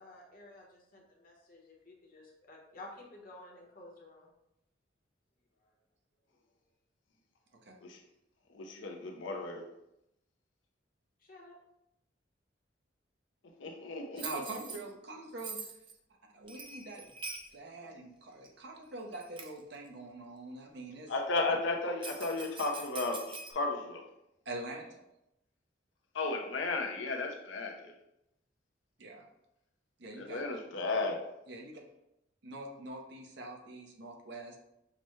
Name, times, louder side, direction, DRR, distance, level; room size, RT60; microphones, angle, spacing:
voice 1, 0.0-4.3 11.2-11.6, left 2 dB, 50° left, 0.9 m, -52 dB
voice 2, 8.5-9.6 13.6-14.4 21.1-24.0 26.1-27.9 30.2-31.2, left 3 dB, 70° left, 0.6 m, -34 dB
Bell, 14.2-14.8 15.4-15.9 16.5-17.5 18.4-18.5 19.1-19.6 22.0-23.5, right 4 dB, 25° right, 0.4 m, -44 dB
voice 3, 14.2-15.6 16.3-17.0 17.5-21.1 24.5-25.0 29.0-29.2 30.0-30.4 31.5-31.8 32.4-34.6, right 2 dB, 60° right, 0.7 m, -44 dB
5.8 x 2.1 x 3.1 m
head